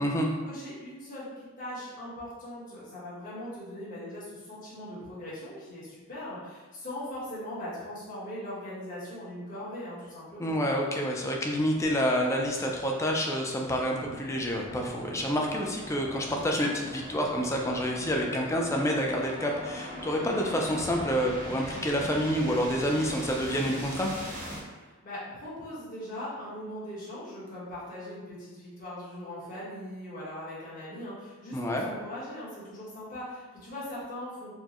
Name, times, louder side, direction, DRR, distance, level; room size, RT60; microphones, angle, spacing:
voice 1, 0.4-10.5 24.8-34.5, left 1 dB, 40° left, -9 dB, 1.2 m, -40 dB
voice 2, 10.4-24.1 31.5-31.9, equal, 15° left, 0 dB, 0.3 m, -28 dB
sound 1, 14.0-24.6, equal, 40° right, 0.6 m, -41 dB
4.3 x 2.1 x 2.9 m, 1.3 s
head